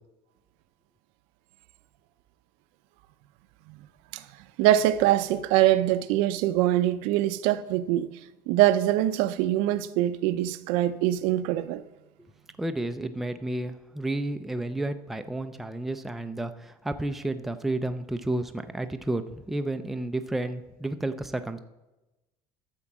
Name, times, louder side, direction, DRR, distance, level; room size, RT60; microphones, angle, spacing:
voice 1, 4.6-8.1 8.5-11.8, right 13 dB, 75° right, 0.6 m, -23 dB
voice 2, 12.6-21.6, right 2 dB, ahead, 0.4 m, -31 dB
12.5 x 4.5 x 7.3 m
cardioid pair, 165°, 10 cm